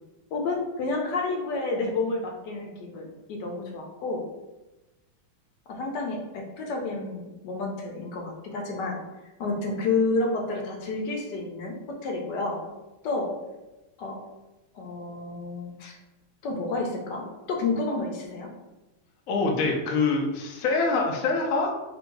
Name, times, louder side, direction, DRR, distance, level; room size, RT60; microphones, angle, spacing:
voice 1, 0.3-4.2 5.7-9.0 9.4-12.6 13.0-13.3 14.0-14.2 14.7-16.0 16.4-18.5, left 3 dB, 70° left, 1 dB, 1.2 m, -30 dB
voice 2, 19.3-21.7, left 3 dB, 85° left, 1 dB, 0.7 m, -25 dB
3.0 x 2.7 x 4.5 m, 1.1 s
omnidirectional pair, 2.2 m